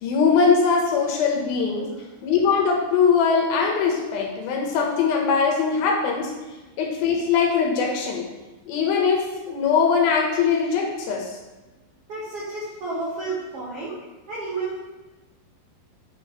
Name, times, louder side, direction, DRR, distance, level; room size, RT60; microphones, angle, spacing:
voice 1, 0.0-1.9 2.2-6.3 6.8-8.2 8.7-11.4, left 5 dB, 75° left, 0 dB, 2.8 m, -21 dB
voice 2, 12.1-14.0 14.3-14.8, right 3 dB, 85° right, -6 dB, 1.3 m, -31 dB
9.0 x 5.4 x 3.1 m, 1.1 s
omnidirectional pair, 4.5 m